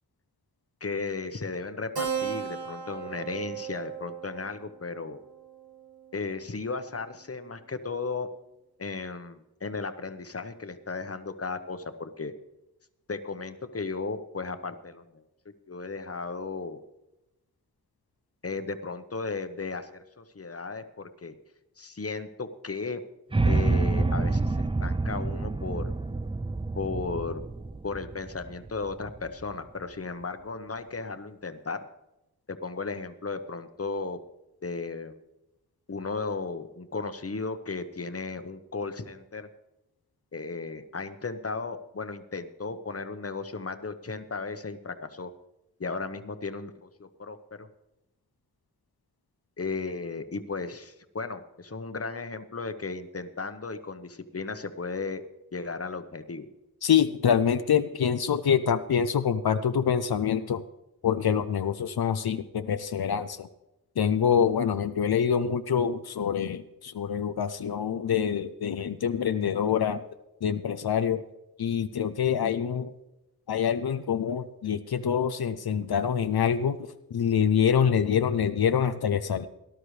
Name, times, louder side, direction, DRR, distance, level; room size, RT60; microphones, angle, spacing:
voice 1, 0.8-5.2 6.1-8.3 8.8-12.3 13.1-15.2 15.7-16.8 18.4-21.4 21.8-23.0 23.4-25.9 26.7-27.4 27.8-31.9 32.5-34.2 34.6-35.2 35.9-39.5 40.3-45.3 45.8-47.7 49.6-55.2 55.5-56.5, left 4 dB, 40° left, 9 dB, 1.0 m, -35 dB
Keyboard (musical), 1.9-6.9, right 8 dB, 85° right, 1.9 m, -37 dB
sound 1, 23.3-29.4, right 3 dB, 15° right, 0.4 m, -28 dB
voice 2, 56.8-60.6 61.0-63.5 64.0-70.0 70.4-71.2 71.6-72.9 73.5-79.5, left 7 dB, 85° left, 9 dB, 0.6 m, -25 dB
18.5 x 11.5 x 3.2 m, 0.93 s
wide cardioid pair, 60°, 36 cm